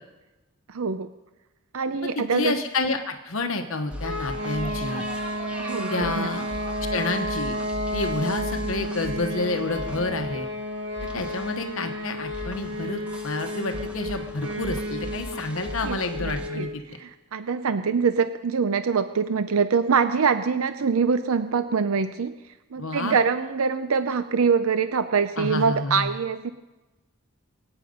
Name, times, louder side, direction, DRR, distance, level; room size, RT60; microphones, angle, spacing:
voice 1, 0.7-1.1 1.7-2.5 5.6-6.3 15.8-22.3 22.7-26.5, right 5 dB, 75° right, 11 dB, 0.5 m, -24 dB
voice 2, 2.1-5.1 5.9-6.4 6.9-7.6 7.9-10.5 11.0-16.8 22.8-23.2 25.4-26.1, left 2 dB, 65° left, 5 dB, 1.1 m, -29 dB
sound 1, 3.9-16.5, left 1 dB, 5° right, 1.0 m, -39 dB
sound 2, 4.0-16.8, equal, 55° right, 1.4 m, -32 dB
23.5 x 9.0 x 5.3 m, 1.1 s
head